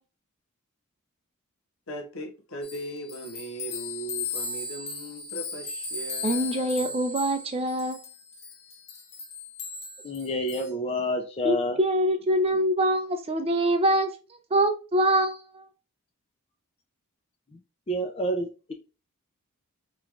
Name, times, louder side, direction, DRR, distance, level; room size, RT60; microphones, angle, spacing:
voice 1, 1.9-7.0, right 2 dB, 65° left, 0.8 m, -39 dB
sound 1, 2.6-10.7, left 4 dB, 50° left, 1.1 m, -36 dB
voice 2, 6.2-8.0 11.4-14.1 14.5-15.7, right 1 dB, 25° right, 0.5 m, -24 dB
voice 3, 10.0-11.8 17.5-17.6 17.9-18.7, equal, 25° left, 0.5 m, -29 dB
4.6 x 3.0 x 2.4 m
head